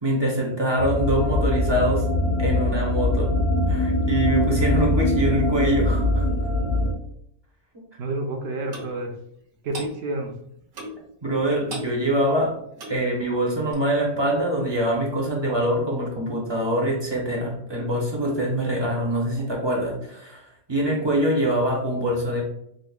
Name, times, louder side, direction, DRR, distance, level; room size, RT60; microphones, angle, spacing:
voice 1, 0.0-2.0 2.4-3.3 3.7-6.3 11.2-12.6 12.9-22.4, right 1 dB, 30° right, -2 dB, 0.4 m, -24 dB
sound 1, 0.8-6.9, left 1 dB, 60° left, 0.8 m, -22 dB
voice 2, 8.0-9.1 9.6-10.3 20.8-21.0, right 2 dB, 65° right, 2 dB, 0.7 m, -29 dB
Clock, 8.7-8.9 9.7-9.9 10.7-11.0 11.7-12.0 12.7-13.0 13.7-13.8, right 1 dB, 80° right, 1.2 m, -35 dB
5.0 x 2.1 x 2.2 m, 0.73 s
omnidirectional pair, 1.4 m